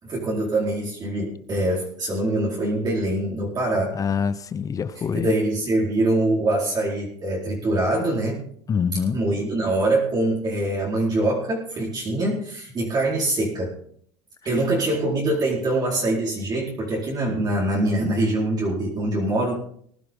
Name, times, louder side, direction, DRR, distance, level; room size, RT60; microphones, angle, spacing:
voice 1, 0.0-4.0 5.1-8.4 9.1-13.8 14.4-19.5, right 1 dB, 30° right, -3 dB, 4.4 m, -24 dB
voice 2, 3.9-5.3 8.7-9.2, left 6 dB, 25° left, 15 dB, 0.8 m, -25 dB
20.0 x 11.5 x 3.7 m, 0.62 s
supercardioid pair, 125°, 13 cm